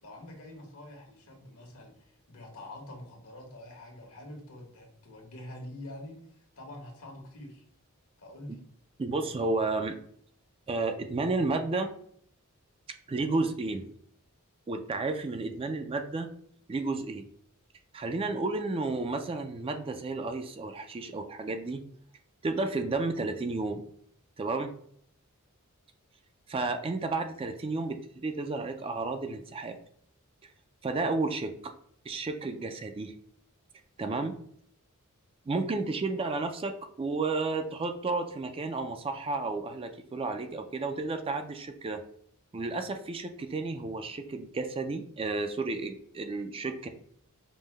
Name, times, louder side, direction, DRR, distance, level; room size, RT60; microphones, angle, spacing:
voice 1, 0.0-7.6 8.2-8.6, left 1 dB, 70° left, 0 dB, 1.3 m, -46 dB
voice 2, 9.0-10.0 10.7-11.9 13.1-13.9 14.7-16.3 16.7-17.3 17.9-21.8 22.4-23.8 24.4-24.7 26.5-29.8 30.4-30.5 30.8-31.7 32.1-33.1 34.0-34.3 35.5-42.0 42.5-46.9, right 3 dB, 25° right, 7 dB, 0.3 m, -32 dB
5.2 x 2.1 x 3.2 m, 0.63 s
head